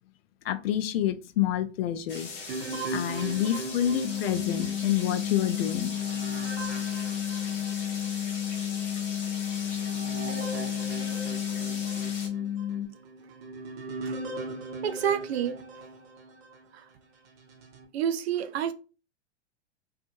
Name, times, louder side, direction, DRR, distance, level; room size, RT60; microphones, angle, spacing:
voice 1, 0.4-2.4 2.9-5.9, left 11 dB, 55° left, 0.5 m, -28 dB
sound 1, 2.1-12.3, left 3 dB, 30° left, 0.9 m, -40 dB
sound 2, 2.5-8.2 8.8-8.9 9.5-16.7 17.3-17.9, right 2 dB, 35° right, 0.7 m, -40 dB
sound 3, 4.0-12.9, left 10 dB, 10° right, 0.9 m, -32 dB
voice 2, 14.8-15.6 17.9-18.7, right 9 dB, 60° right, 0.5 m, -28 dB
2.6 x 2.4 x 2.6 m
hypercardioid pair, 105°, 36 cm